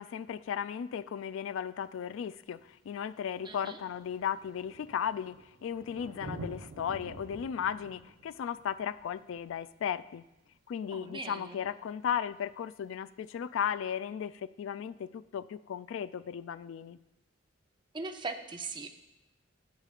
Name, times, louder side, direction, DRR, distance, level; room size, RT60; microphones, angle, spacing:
voice 1, 0.0-10.2 10.7-17.0, left 8 dB, 75° left, 16 dB, 0.3 m, -36 dB
Thunder, 1.9-2.0 2.9-3.0 3.2-10.6 12.2-12.3, right 1 dB, 70° right, 0.8 m, -48 dB
voice 2, 3.4-3.8 10.9-11.6 17.9-19.0, right 3 dB, 25° right, 6 dB, 0.7 m, -40 dB
17.0 x 6.7 x 2.4 m, 0.90 s
head